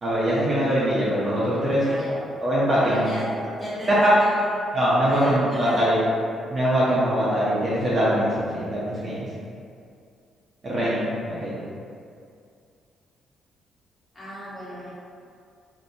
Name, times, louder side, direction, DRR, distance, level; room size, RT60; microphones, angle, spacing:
voice 1, 0.0-1.8 2.4-3.1 4.0-4.1 4.7-6.0 6.5-9.3 10.6-11.6, equal, 30° right, -9 dB, 0.6 m, -22 dB
voice 2, 1.8-2.1 2.8-3.2 3.6-4.6 5.1-6.1 9.1-9.3 14.1-14.9, equal, 15° left, -10 dB, 1.1 m, -35 dB
4.0 x 2.7 x 2.6 m, 2.3 s
cardioid pair, 155°, 0 cm